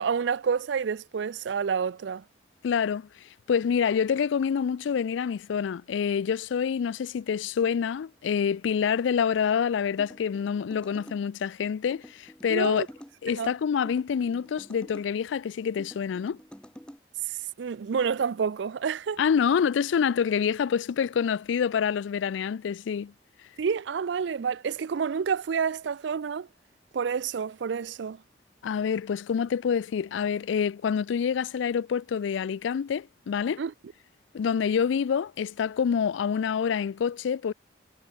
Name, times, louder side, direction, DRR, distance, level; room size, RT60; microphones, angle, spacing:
voice 1, 0.0-2.2 12.5-12.9 13.3-13.5 17.6-19.2 23.6-26.5 26.9-28.2 33.6-33.7, right 6 dB, 75° right, 0.4 m, -29 dB
voice 2, 2.6-12.8 13.2-16.4 19.2-23.1 28.6-33.6 34.3-37.5, left 7 dB, 85° left, 0.3 m, -27 dB
sound 1, 10.0-11.2 11.9-13.1 13.8-15.1 15.8-17.0, equal, 5° left, 1.1 m, -47 dB
head